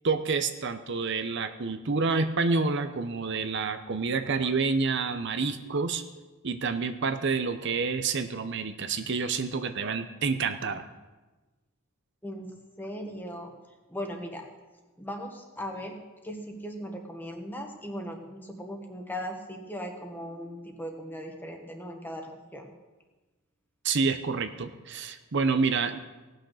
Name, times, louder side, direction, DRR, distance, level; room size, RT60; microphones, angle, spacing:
voice 1, 0.0-6.0 6.4-10.9 23.8-26.0, right 4 dB, 55° right, 8 dB, 0.7 m, -28 dB
voice 2, 12.8-13.5 13.9-14.5 15.0-16.0 16.2-22.7, equal, 10° left, 3 dB, 1.3 m, -38 dB
17.5 x 6.5 x 6.4 m, 1.2 s
head